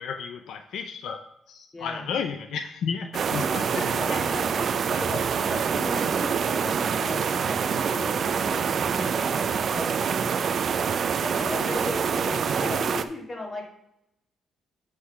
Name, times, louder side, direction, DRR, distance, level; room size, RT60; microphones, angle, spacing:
voice 1, 0.0-4.2, left 6 dB, 70° left, 8 dB, 0.5 m, -33 dB
voice 2, 1.7-2.1 3.3-9.4 9.6-10.7 11.1-13.7, left 2 dB, 20° left, 0 dB, 2.2 m, -37 dB
sound 1, 3.1-13.0, right 6 dB, 55° right, 0.5 m, -26 dB
8.6 x 3.8 x 5.7 m, 0.83 s
cardioid pair, 90°, 0 cm